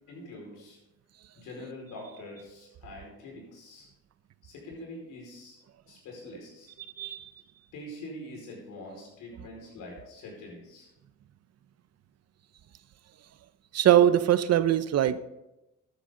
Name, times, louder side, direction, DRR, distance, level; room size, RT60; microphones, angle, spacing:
voice 1, 0.1-0.8 1.3-3.9 4.4-5.6 5.9-6.7 7.7-10.9, left 1 dB, 85° left, 5.1 m, -44 dB
voice 2, 7.0-7.3 13.7-15.2, right 11 dB, 55° right, 0.7 m, -22 dB
13.0 x 10.0 x 3.9 m
cardioid pair, 90°, 30 cm